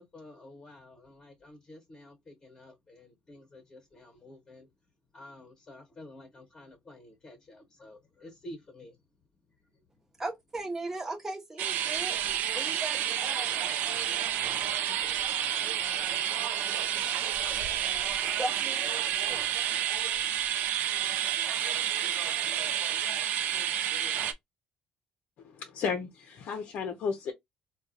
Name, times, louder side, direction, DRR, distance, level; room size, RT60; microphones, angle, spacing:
voice 1, 0.0-4.7 5.1-9.0, left 1 dB, 30° left, 1.1 m, -50 dB
voice 2, 10.2-13.7 18.4-19.5, right 2 dB, 15° right, 1.0 m, -38 dB
sound 1, 11.6-24.3, right 10 dB, 65° right, 0.5 m, -30 dB
voice 3, 25.4-27.3, left 6 dB, 60° left, 0.6 m, -33 dB
3.8 x 2.3 x 2.6 m
cardioid pair, 135°, 3 cm